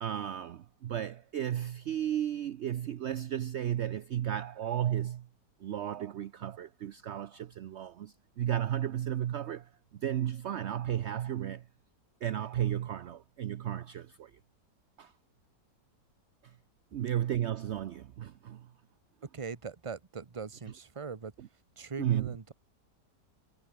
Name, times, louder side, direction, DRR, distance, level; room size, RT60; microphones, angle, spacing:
voice 1, 0.0-5.3 5.6-11.6 12.2-14.3 15.0-15.1 16.4-16.5 16.9-18.7 21.4-21.5 22.0-22.4, right 11 dB, 65° right, 0.6 m, -34 dB
voice 2, 19.3-21.3 21.8-22.5, right 5 dB, 25° right, 0.9 m, -41 dB
omnidirectional pair, 1.9 m